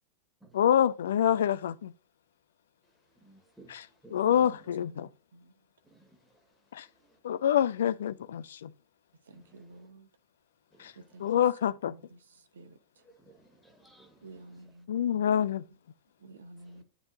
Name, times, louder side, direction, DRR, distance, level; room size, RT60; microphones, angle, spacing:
voice 1, 0.5-1.9 3.7-3.9 4.1-5.1 6.7-6.9 7.2-8.7 10.8-10.9 11.2-11.9 14.9-15.6, left 9 dB, 60° left, 0.4 m, -26 dB
voice 2, 3.2-4.6 5.8-6.5 6.8-7.2 9.3-9.8 10.7-11.3 13.0-14.5 16.6-16.8, right 3 dB, ahead, 1.5 m, -59 dB
voice 3, 4.9-5.5 9.3-10.1 10.9-11.3 11.9-13.0 14.2-14.9 16.2-16.8, right 2 dB, 65° right, 0.9 m, -52 dB
9.8 x 3.8 x 2.6 m
figure-of-eight pair, 90°, 0 cm